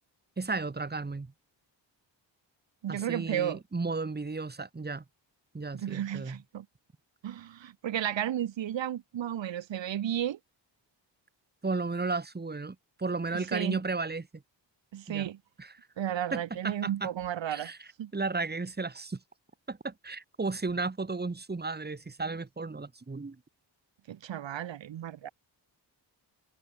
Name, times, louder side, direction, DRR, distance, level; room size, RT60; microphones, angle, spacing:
voice 1, 0.4-1.3 2.9-5.0 5.5-6.4 11.6-14.4 15.1-15.3 15.6-15.8 16.3-17.1 17.5-19.2 19.7-23.4, right 3 dB, 20° right, 2.7 m, -34 dB
voice 2, 2.8-3.6 5.7-6.6 7.2-10.4 13.3-13.8 14.9-15.4 16.0-18.1 24.1-25.3, right 11 dB, 80° right, 1.3 m, -33 dB
wide cardioid pair, 150°, 44 cm